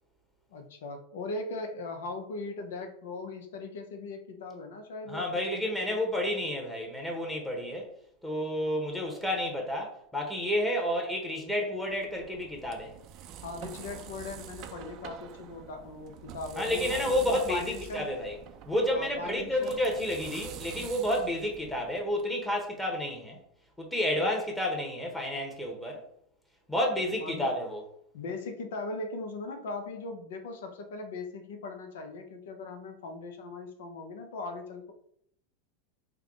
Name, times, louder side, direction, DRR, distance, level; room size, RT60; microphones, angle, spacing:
voice 1, 0.5-6.0 13.4-18.1 18.9-19.8 24.2-24.3 27.2-27.5 28.1-34.9, left 3 dB, 75° left, 0.7 m, -39 dB
voice 2, 5.1-7.9 8.2-13.0 16.6-18.3 18.7-23.4 23.8-26.0 26.7-27.8, left 1 dB, 5° left, 1.1 m, -30 dB
sound 1, 11.9-22.2, right 8 dB, 50° right, 0.4 m, -46 dB
3.4 x 2.2 x 3.7 m
hypercardioid pair, 100°, 0 cm